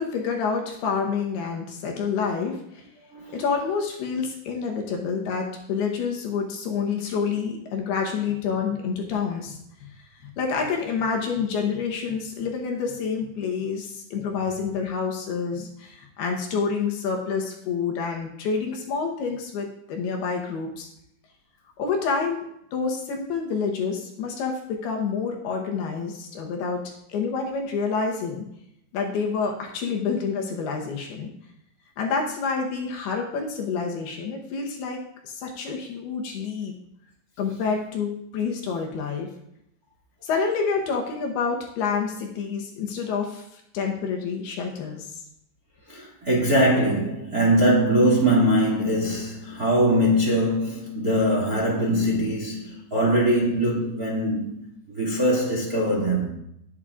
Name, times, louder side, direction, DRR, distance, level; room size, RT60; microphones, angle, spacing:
voice 1, 0.0-2.8 3.3-9.9 10.2-20.9 21.8-22.4 22.7-26.8 27.1-28.5 28.9-31.3 32.0-36.7 37.4-39.3 40.2-45.2, left 5 dB, 70° left, 2.8 m, -28 dB
voice 2, 3.1-3.4 45.9-54.6 54.9-56.3, right 1 dB, 30° right, 1.6 m, -22 dB
18.5 x 8.4 x 2.5 m
omnidirectional pair, 5.2 m